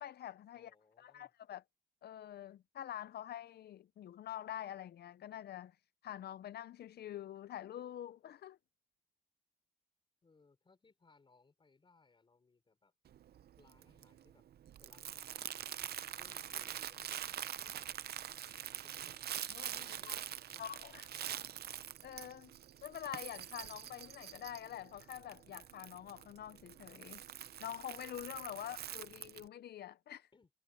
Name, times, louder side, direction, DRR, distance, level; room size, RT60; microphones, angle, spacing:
voice 1, 0.0-0.7 1.0-1.6 2.0-5.8 6.0-8.6 19.5-20.2 20.6-21.1 22.0-22.5 22.8-27.2 27.6-30.3, left 11 dB, 80° left, 0.4 m, -46 dB
voice 2, 0.5-1.3 10.2-12.9 13.6-14.5 14.8-18.1 18.8-19.3 19.7-21.6 30.3-30.5, left 4 dB, 30° left, 5.5 m, -68 dB
Crumpling crinkling, 13.1-29.5, right 10 dB, 80° right, 0.5 m, -45 dB
wide cardioid pair, 170°, 16 cm